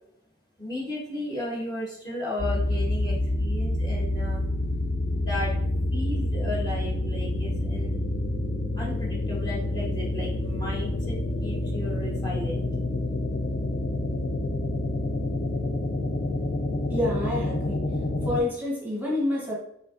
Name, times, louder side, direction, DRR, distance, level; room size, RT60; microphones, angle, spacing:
voice 1, 0.6-4.4 5.1-5.5 5.9-7.9 8.8-12.7, left 2 dB, 20° left, -6 dB, 1.1 m, -35 dB
sound 1, 2.4-18.4, left 1 dB, 45° left, 0.5 m, -28 dB
voice 2, 16.9-17.8 18.2-19.5, left 1 dB, 10° right, -4 dB, 1.1 m, -28 dB
5.4 x 3.5 x 2.5 m, 0.75 s
head